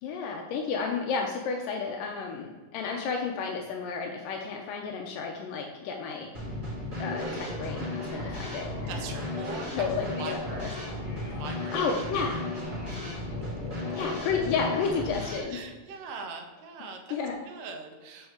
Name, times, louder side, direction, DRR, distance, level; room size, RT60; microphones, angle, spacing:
voice 1, 0.0-6.3 7.0-8.9 9.7-10.7 11.7-12.5 13.9-15.6 17.1-17.4, left 5 dB, 80° left, 2 dB, 2.3 m, -32 dB
Drum kit / Snare drum, 6.3-15.4, left 1 dB, 15° right, 1.9 m, -35 dB
sound 1, 7.1-15.1, left 2 dB, 45° left, 2.2 m, -42 dB
voice 2, 8.9-10.9 11.2-11.8 15.5-17.2 17.5-18.3, right 4 dB, 75° right, 4 dB, 2.5 m, -41 dB
6.3 x 4.7 x 6.3 m, 1.4 s
omnidirectional pair, 3.9 m